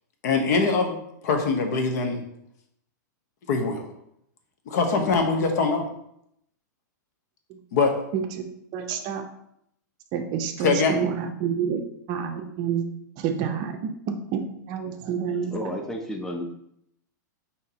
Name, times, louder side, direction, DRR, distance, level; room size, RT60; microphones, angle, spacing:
voice 1, 0.2-1.0 1.2-2.2 3.5-3.9 4.7-5.9 7.7-8.0 8.9-9.0 10.6-11.0, left 4 dB, 60° left, 4 dB, 0.9 m, -23 dB
voice 2, 8.7-9.3 10.1-12.9 13.2-15.5, right 7 dB, 40° right, 6 dB, 0.5 m, -28 dB
voice 3, 15.3-16.6, equal, 5° left, 3 dB, 0.6 m, -33 dB
5.7 x 2.8 x 2.8 m, 0.75 s
hypercardioid pair, 120°, 10 cm